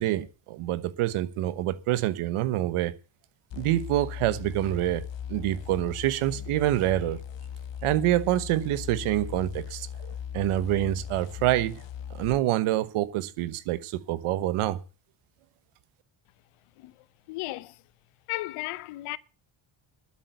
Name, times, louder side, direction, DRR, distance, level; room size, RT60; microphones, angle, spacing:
voice 1, 0.0-2.9 3.5-5.0 5.3-7.2 7.8-9.9 10.3-11.8 12.1-14.8, right 14 dB, 85° right, 1.2 m, -26 dB
sound 1, 3.5-12.4, left 8 dB, 60° left, 1.2 m, -38 dB
voice 2, 16.8-17.8 18.3-19.2, left 18 dB, 85° left, 0.9 m, -35 dB
12.5 x 8.5 x 8.1 m
supercardioid pair, 70°, 49 cm